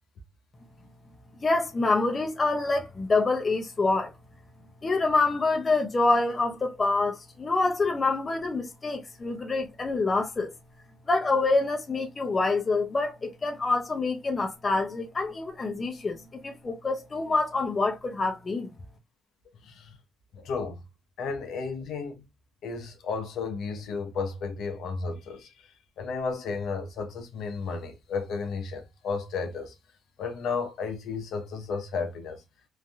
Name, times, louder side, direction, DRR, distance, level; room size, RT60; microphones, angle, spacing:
voice 1, 1.4-4.1 4.8-10.5 11.1-18.8, left 3 dB, 30° left, 0.7 m, -26 dB
voice 2, 19.6-20.0 20.3-20.8 21.2-22.2 22.6-25.7 26.0-29.7 30.2-32.4, left 4 dB, 75° left, 0.7 m, -33 dB
3.3 x 2.6 x 2.2 m
cardioid pair, 90°, 0 cm